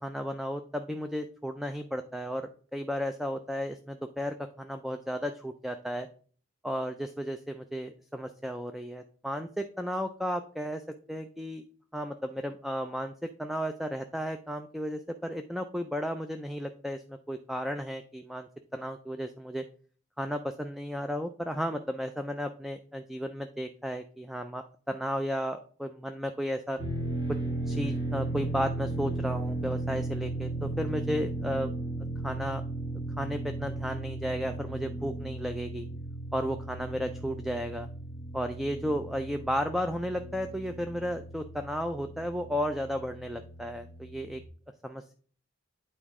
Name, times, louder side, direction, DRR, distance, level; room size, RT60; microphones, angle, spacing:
voice 1, 0.0-6.1 6.6-10.8 11.1-11.6 11.9-19.6 20.2-26.8 27.7-31.7 32.2-32.6 33.2-35.9 36.3-37.9 38.3-44.4 44.8-45.1, equal, ahead, 7 dB, 0.3 m, -34 dB
sound 1, 26.8-44.4, right 2 dB, 20° right, 2.2 m, -36 dB
9.0 x 4.4 x 3.6 m, 0.43 s
head